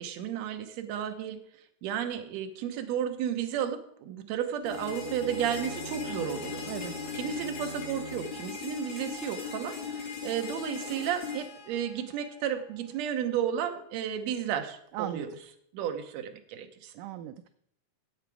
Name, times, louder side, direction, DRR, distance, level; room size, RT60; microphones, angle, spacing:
voice 1, 0.0-1.4 1.8-6.7 7.1-15.4 15.7-16.9, right 9 dB, 65° right, 6 dB, 1.9 m, -33 dB
Bowed string instrument, 4.6-8.5, right 1 dB, 15° right, 2.9 m, -44 dB
sound 1, 4.7-12.6, left 6 dB, 60° left, 3.8 m, -39 dB
voice 2, 14.9-15.3 17.0-17.5, right 12 dB, 80° right, 10 dB, 1.9 m, -37 dB
13.0 x 8.2 x 4.8 m, 0.71 s
omnidirectional pair, 4.0 m